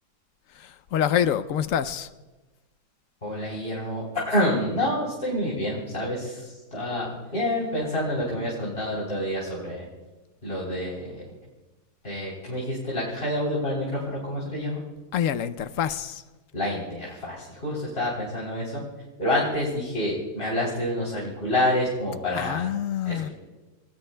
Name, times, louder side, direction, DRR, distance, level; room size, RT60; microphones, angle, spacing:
voice 1, 0.5-2.1 15.1-16.2 22.3-23.3, left 9 dB, 65° left, 12 dB, 0.9 m, -26 dB
voice 2, 3.2-9.9 10.4-11.1 12.0-14.8 16.5-18.8 19.2-22.6 23.1-23.3, left 1 dB, 35° left, -5 dB, 3.8 m, -28 dB
28.0 x 19.0 x 2.2 m, 1.2 s
omnidirectional pair, 1.7 m